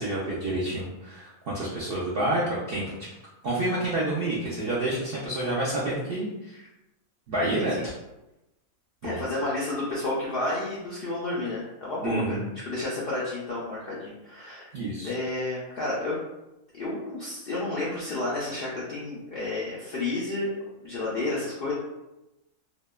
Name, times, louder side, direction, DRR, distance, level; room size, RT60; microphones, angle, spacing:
voice 1, 0.0-3.1 3.4-6.7 7.3-7.9 9.0-9.2 12.0-12.5 14.7-15.1, right 1 dB, 75° right, -6 dB, 0.5 m, -29 dB
voice 2, 9.0-14.7 15.0-16.2 16.7-20.6 20.8-21.7, left 2 dB, 70° left, -7 dB, 0.5 m, -31 dB
2.7 x 2.1 x 2.2 m, 0.95 s
omnidirectional pair, 1.5 m